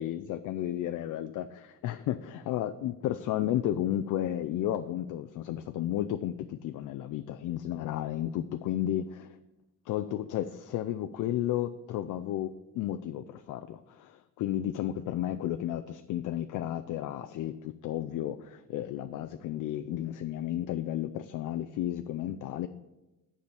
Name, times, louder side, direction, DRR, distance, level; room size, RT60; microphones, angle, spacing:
voice 1, 0.0-9.4 9.9-22.7, left 12 dB, 60° left, 9 dB, 0.5 m, -33 dB
8.1 x 5.0 x 7.1 m, 1.0 s
cardioid pair, 105°, 34 cm